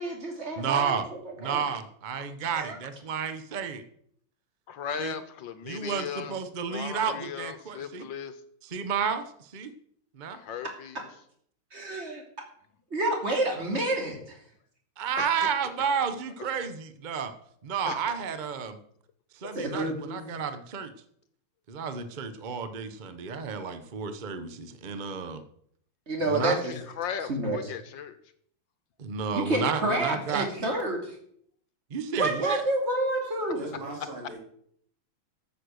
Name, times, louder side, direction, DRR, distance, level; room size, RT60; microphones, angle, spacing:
voice 1, 0.0-0.9 1.2-1.6 2.5-2.8 11.7-12.2 12.9-14.4 19.5-20.2 26.1-26.7 27.2-27.7 29.3-31.2 32.2-33.7, right 1 dB, 30° right, 2 dB, 2.9 m, -29 dB
voice 2, 0.6-1.1 1.4-3.8 5.0-5.2 5.6-8.1 8.6-9.7 10.1-10.4 15.0-17.3 17.6-18.8 19.3-20.9 21.7-25.4 26.2-26.6 29.0-30.5 31.9-32.6, right 6 dB, 55° right, 10 dB, 0.5 m, -31 dB
voice 3, 4.7-6.3 6.7-8.3 10.4-10.9 15.2-15.3 17.9-18.0 27.0-28.1, left 8 dB, 70° left, 11 dB, 1.6 m, -36 dB
voice 4, 33.2-34.4, right 2 dB, 80° right, -1 dB, 4.5 m, -40 dB
13.0 x 7.7 x 6.4 m, 0.66 s
omnidirectional pair, 2.3 m